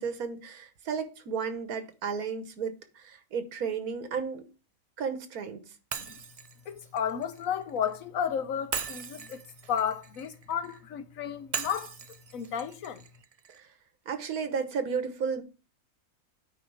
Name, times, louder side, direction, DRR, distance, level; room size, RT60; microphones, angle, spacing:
voice 1, 0.0-4.5 5.0-5.6 13.5-13.7 14.1-15.4, right 6 dB, 85° right, 1.6 m, -33 dB
Shatter, 5.9-8.0 8.7-10.8 11.5-13.6, right 6 dB, 70° right, 0.3 m, -39 dB
voice 2, 6.7-9.4 9.7-12.0 12.3-13.0, left 8 dB, 70° left, 1.2 m, -33 dB
9.2 x 5.0 x 4.7 m
omnidirectional pair, 1.5 m